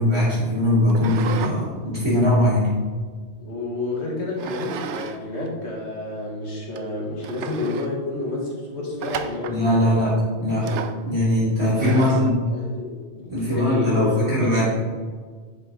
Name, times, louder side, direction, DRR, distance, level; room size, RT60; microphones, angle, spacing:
voice 1, 0.0-2.7 9.5-10.1 10.4-12.4 13.3-14.6, left 1 dB, 20° right, -12 dB, 2.8 m, -20 dB
sound 1, 0.9-1.6 2.0-3.4 4.4-5.2 5.5-5.6 6.2-6.3 6.8-6.9 7.2-7.9 9.0-9.6 10.6-11.0 11.8-12.3, right 7 dB, 75° right, 0.9 m, -33 dB
voice 2, 3.4-10.0 11.3-11.4 11.9-12.2 12.5-14.6, left 2 dB, 65° left, -4 dB, 2.3 m, -30 dB
10.0 x 5.2 x 3.9 m, 1.5 s
omnidirectional pair, 1.2 m